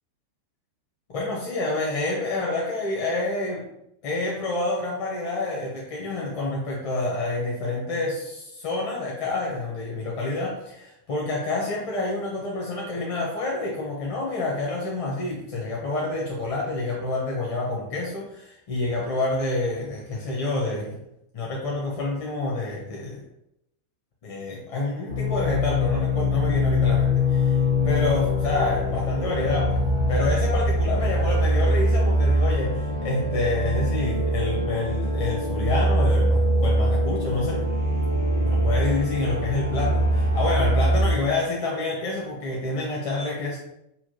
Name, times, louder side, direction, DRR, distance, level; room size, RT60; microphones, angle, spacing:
voice 1, 1.1-3.6 4.0-21.0 21.3-23.2 24.2-29.8 30.1-37.6 38.4-43.6, left 2 dB, 45° left, -3 dB, 0.9 m, -28 dB
sound 1, 25.1-41.1, equal, 70° left, 1.1 m, -23 dB
5.5 x 2.4 x 2.8 m, 0.82 s
figure-of-eight pair, 90°, 0 cm